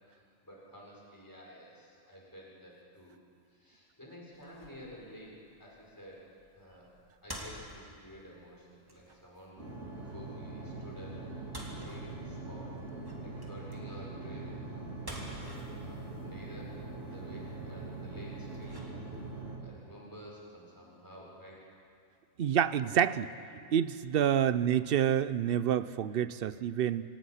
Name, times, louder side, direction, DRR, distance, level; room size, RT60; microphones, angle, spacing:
voice 1, 0.1-3.2 3.5-6.3 6.5-6.9 7.2-9.6 9.9-11.2 11.6-12.8 13.2-14.7 15.7-19.1 19.6-21.7, equal, 15° left, -3 dB, 4.7 m, -51 dB
sound 1, 4.3-19.4, equal, 15° right, 2.7 m, -51 dB
sound 2, 9.6-19.6, right 3 dB, 75° right, 3.2 m, -42 dB
voice 2, 22.4-23.3 23.7-27.0, right 9 dB, 55° right, 15 dB, 0.7 m, -28 dB
26.0 x 18.0 x 5.7 m, 2.3 s
omnidirectional pair, 1.3 m